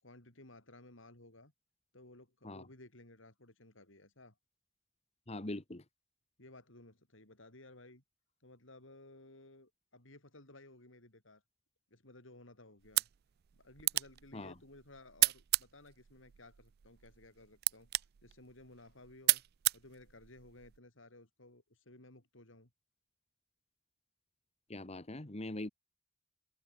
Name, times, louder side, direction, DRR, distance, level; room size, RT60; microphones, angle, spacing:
voice 1, 0.0-1.5 1.9-4.4 6.4-8.0 8.4-11.4 11.9-13.1 13.5-19.4 19.7-22.7, left 2 dB, 70° left, 4.9 m, -57 dB
voice 2, 5.3-5.8 14.3-14.5 24.7-25.7, left 1 dB, 30° left, 1.5 m, -42 dB
sound 1, 12.8-20.8, right 18 dB, 50° right, 0.4 m, -36 dB
head